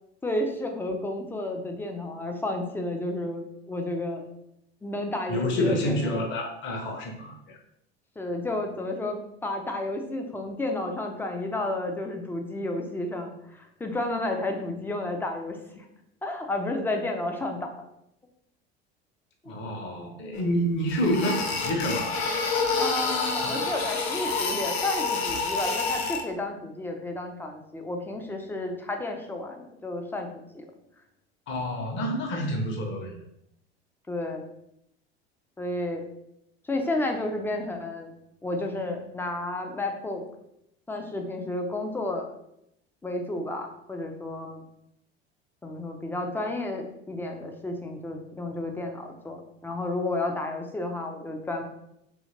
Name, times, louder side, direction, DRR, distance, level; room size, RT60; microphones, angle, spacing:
voice 1, 0.2-4.3 4.8-6.0 8.2-15.9 16.2-17.7 22.8-30.6 34.1-34.4 35.6-36.0 36.7-38.1 38.4-40.2 40.9-42.3 43.0-44.7 45.6-51.6, left 2 dB, 5° left, 3 dB, 0.3 m, -31 dB
voice 2, 5.3-7.6 19.5-22.2 23.4-23.6 31.5-33.2, equal, 35° left, 1 dB, 0.7 m, -28 dB
sound 1, 20.4-20.5 20.9-26.2, left 4 dB, 80° left, 0.5 m, -28 dB
2.7 x 2.6 x 2.7 m, 0.79 s
figure-of-eight pair, 75°, 31 cm